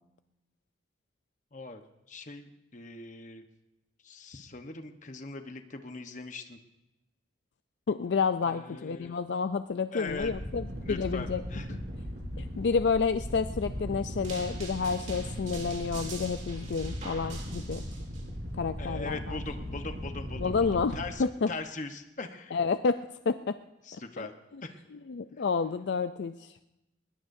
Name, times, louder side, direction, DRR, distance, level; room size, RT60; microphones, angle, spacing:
voice 1, 1.5-3.4 4.0-6.6 8.4-9.2 9.9-10.3 10.8-11.8 18.8-22.6 23.8-24.3 24.6-24.8, left 3 dB, 40° left, 7 dB, 1.1 m, -41 dB
voice 2, 7.9-11.4 11.7-11.8 12.4-17.8 18.6-19.4 20.4-21.5 22.5-23.0 23.3-23.6 24.2-24.3 25.1-26.5, left 5 dB, 65° left, 10 dB, 0.4 m, -30 dB
sound 1, 10.1-21.1, equal, 55° right, 4.4 m, -38 dB
sound 2, 14.2-18.2, right 4 dB, 40° right, 2.9 m, -45 dB
20.5 x 20.5 x 2.7 m, 0.96 s
head